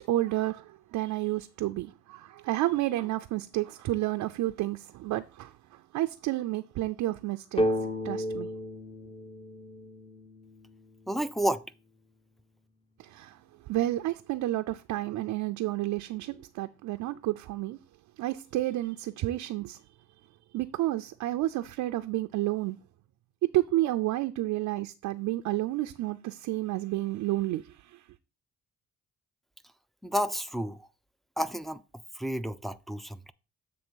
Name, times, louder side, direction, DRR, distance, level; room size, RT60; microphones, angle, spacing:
voice 1, 0.0-7.6 8.0-8.5 13.0-13.4 13.7-17.8 18.2-19.8 20.5-22.8 23.4-28.0, right 16 dB, 85° right, 0.5 m, -30 dB
sound 1, 7.6-11.2, equal, 20° left, 0.8 m, -33 dB
voice 2, 11.1-11.7 30.0-30.9 31.4-31.8 32.2-33.3, equal, ahead, 0.4 m, -31 dB
7.7 x 3.2 x 6.2 m
cardioid pair, 90°, 30 cm